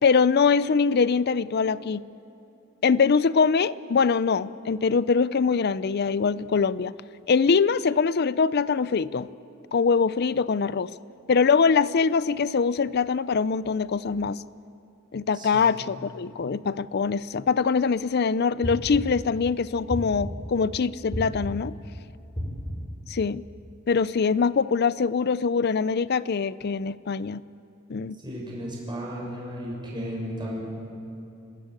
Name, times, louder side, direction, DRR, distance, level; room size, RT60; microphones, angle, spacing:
voice 1, 0.0-2.0 2.8-6.9 7.3-9.3 9.7-10.9 11.3-14.4 15.1-21.7 23.1-23.4 23.9-27.4 27.9-28.2, left 5 dB, 50° left, 18 dB, 0.5 m, -23 dB
voice 2, 15.3-15.8 28.2-30.6, equal, 20° right, -3 dB, 6.8 m, -34 dB
sound 1, 18.6-19.3 19.9-20.5 21.1-21.8 22.3-23.0, equal, 20° left, 6.6 m, -32 dB
29.0 x 13.0 x 8.8 m, 2.9 s
head